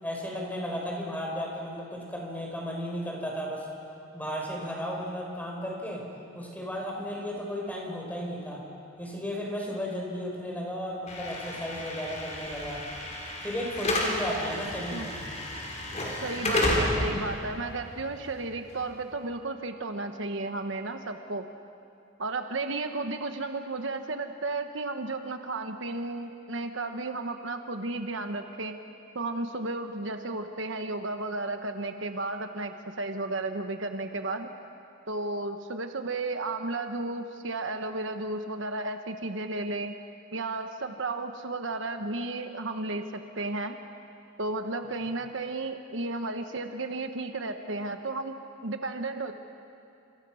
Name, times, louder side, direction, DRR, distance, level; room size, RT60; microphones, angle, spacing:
voice 1, 0.0-3.6 4.1-6.0 6.3-8.6 9.0-12.8 13.4-15.1, equal, 10° left, -1 dB, 5.8 m, -34 dB
Slam / Alarm, 11.1-19.1, left 1 dB, 35° left, 5.0 m, -31 dB
voice 2, 16.2-21.5 22.2-28.8 29.1-34.5 35.1-39.9 40.3-43.8 44.4-48.3 48.6-49.3, right 2 dB, 65° right, 6 dB, 1.3 m, -33 dB
29.0 x 27.0 x 6.4 m, 2.6 s
head